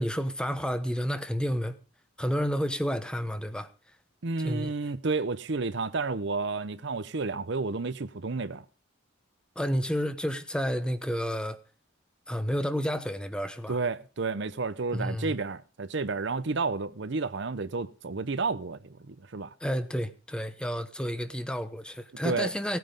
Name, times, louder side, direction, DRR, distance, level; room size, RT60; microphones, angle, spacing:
voice 1, 0.0-1.8 2.2-3.7 4.4-4.7 9.6-11.6 12.3-13.8 14.9-15.3 19.6-22.8, equal, 5° left, 1.0 m, -30 dB
voice 2, 4.2-8.6 13.7-19.5 22.2-22.5, right 4 dB, 60° right, 0.7 m, -31 dB
17.5 x 9.3 x 5.2 m
head